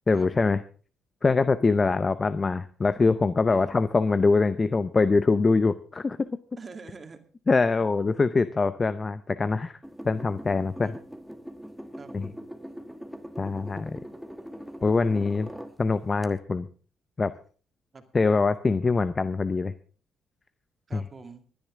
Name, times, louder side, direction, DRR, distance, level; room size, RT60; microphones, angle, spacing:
voice 1, 0.1-0.6 1.2-6.3 7.5-9.8 10.0-10.9 12.1-12.3 13.4-14.0 14.8-15.5 15.8-16.7 17.2-17.3 18.1-19.7 20.9-21.0, left 4 dB, 30° left, 14 dB, 0.6 m, -23 dB
voice 2, 6.6-7.2 10.8-11.0 12.0-12.5 17.9-18.0 20.9-21.4, right 4 dB, 35° right, 6 dB, 2.2 m, -45 dB
sound 1, 9.8-15.8 16.2-16.3, equal, ahead, 1.3 m, -42 dB
25.0 x 10.0 x 3.7 m, 0.40 s
cardioid pair, 90°, 0 cm